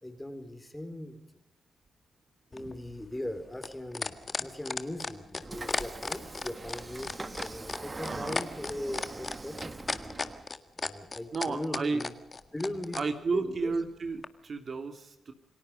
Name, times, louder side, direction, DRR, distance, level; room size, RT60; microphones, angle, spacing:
voice 1, 0.0-1.2 2.5-10.2 10.8-12.1 12.5-13.0 13.3-13.7, left 1 dB, 10° left, 8 dB, 4.4 m, -39 dB
sound 1, 2.5-13.1 14.2-14.3, left 4 dB, 35° left, 1.8 m, -34 dB
Train / Sliding door, 5.4-10.5, right 3 dB, 30° right, 1.3 m, -42 dB
voice 2, 8.1-8.4 11.3-12.0 13.0-15.3, right 4 dB, 50° right, 6 dB, 2.6 m, -32 dB
28.5 x 19.0 x 5.3 m, 0.77 s
cardioid pair, 75°, 0 cm